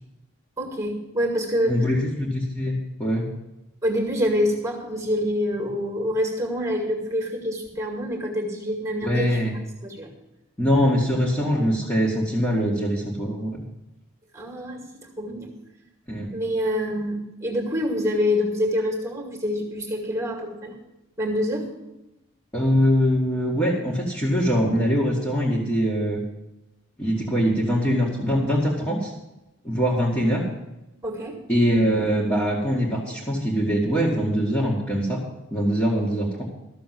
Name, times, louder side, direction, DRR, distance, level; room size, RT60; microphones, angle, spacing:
voice 1, 0.6-1.9 3.8-9.4 9.8-10.1 14.3-15.5 16.3-20.7 21.2-21.7 31.0-31.4, equal, 15° right, 1 dB, 2.2 m, -26 dB
voice 2, 1.7-3.2 9.0-9.6 10.6-13.6 16.1-16.4 22.5-26.2 27.0-29.1 29.6-30.4 31.5-35.2 35.5-36.4, equal, 15° left, -5 dB, 2.1 m, -23 dB
14.0 x 7.0 x 7.6 m, 0.95 s
head